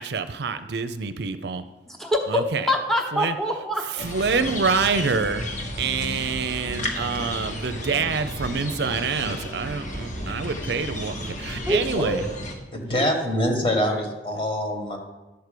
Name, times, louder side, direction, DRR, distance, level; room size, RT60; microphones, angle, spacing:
voice 1, 0.0-1.6 2.3-2.7 3.1-3.4 3.9-5.5 5.8-12.3, right 5 dB, 65° right, 10 dB, 0.5 m, -26 dB
voice 2, 1.9-4.1 11.6-12.2, left 1 dB, ahead, 3 dB, 1.0 m, -25 dB
sound 1, 4.0-12.6, left 1 dB, 45° left, 1.4 m, -33 dB
voice 3, 12.7-15.0, equal, 30° left, 2 dB, 1.5 m, -24 dB
11.5 x 4.7 x 6.7 m, 1.1 s
head